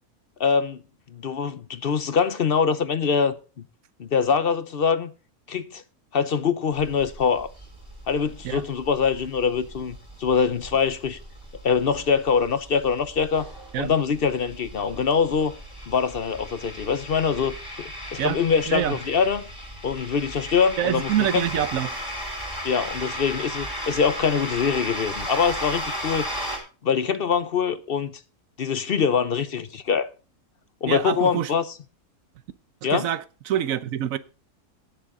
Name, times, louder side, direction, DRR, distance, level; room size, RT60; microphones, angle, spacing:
voice 1, 0.4-0.8 1.1-3.4 4.0-5.1 5.5-5.8 6.1-7.5 8.1-11.2 11.6-13.5 13.8-15.5 15.9-19.4 19.8-21.4 22.6-26.3 26.8-28.2 28.6-30.1 30.8-31.6 32.8-33.1, left 6 dB, 50° left, 0.7 m, -24 dB
sound 1, 6.7-26.6, equal, 15° right, 3.9 m, -36 dB
voice 2, 18.7-19.0 20.8-22.0 30.9-31.5 32.9-34.2, right 10 dB, 65° right, 1.1 m, -26 dB
18.0 x 7.0 x 3.7 m
omnidirectional pair, 1.6 m